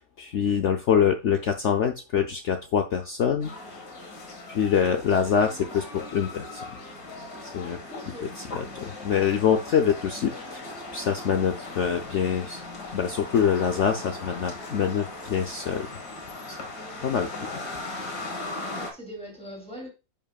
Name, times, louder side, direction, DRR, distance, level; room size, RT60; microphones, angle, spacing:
voice 1, 0.0-4.1 4.5-6.7 7.5-12.6 12.9-15.9 16.5-16.6 17.0-17.3, left 7 dB, 90° left, 5 dB, 0.6 m, -25 dB
sound 1, 3.4-18.9, left 2 dB, 60° left, 2.2 m, -38 dB
voice 2, 7.9-8.3 18.6-19.9, equal, 5° left, 0 dB, 2.5 m, -41 dB
10.0 x 5.1 x 2.3 m, 0.28 s
omnidirectional pair, 2.0 m